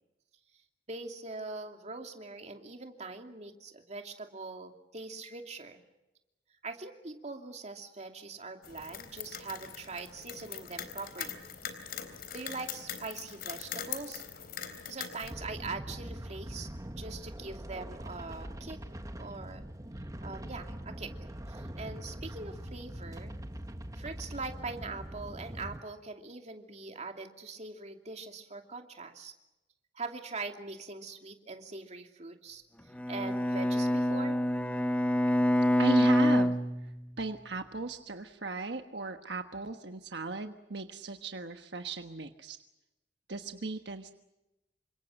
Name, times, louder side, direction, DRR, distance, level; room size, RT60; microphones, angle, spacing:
voice 1, 0.9-5.8 6.6-11.4 12.1-14.2 14.8-16.7 17.0-18.8 19.2-19.6 20.2-21.1 21.5-23.3 23.9-29.3 29.9-34.4, right 3 dB, 40° right, 4 dB, 2.7 m, -42 dB
sound 1, 8.6-15.3, left 8 dB, 60° left, 3.8 m, -42 dB
sound 2, 15.2-25.8, right 1 dB, 20° right, 1.3 m, -42 dB
Bowed string instrument, 32.9-37.3, left 1 dB, 10° left, 1.2 m, -27 dB
voice 2, 35.8-36.5 37.2-42.6 43.3-44.1, right 3 dB, 70° right, 6 dB, 1.3 m, -36 dB
29.0 x 26.0 x 6.5 m, 0.97 s
head